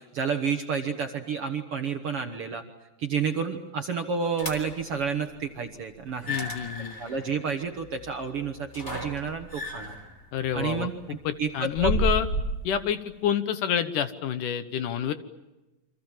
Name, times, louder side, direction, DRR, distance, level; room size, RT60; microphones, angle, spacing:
voice 1, 0.0-2.6 3.0-6.4 6.8-9.9 10.5-11.9, right 6 dB, 55° right, 6 dB, 1.7 m, -30 dB
sound 1, 4.4-4.9 6.1-12.7, equal, 20° left, 3.5 m, -33 dB
voice 2, 6.3-7.2 10.3-12.3 12.6-15.1, left 9 dB, 70° left, 11 dB, 2.5 m, -28 dB
29.0 x 25.5 x 7.3 m, 1.0 s
omnidirectional pair, 4.1 m